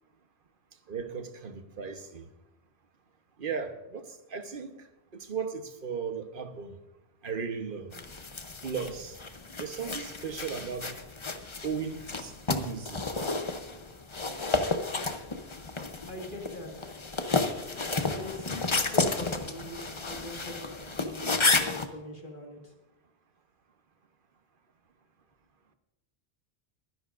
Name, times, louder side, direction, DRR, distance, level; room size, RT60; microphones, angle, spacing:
voice 1, 0.9-2.2 3.4-4.8 5.1-6.7 7.2-7.9 8.6-9.2 9.6-10.9 11.6-13.0, right 6 dB, 55° right, 1.2 m, -36 dB
sound 1, 7.9-21.9, left 3 dB, 30° left, 0.8 m, -32 dB
voice 2, 16.1-16.9 18.1-22.7, left 1 dB, 50° left, 1.9 m, -42 dB
21.5 x 10.5 x 2.5 m
omnidirectional pair, 1.1 m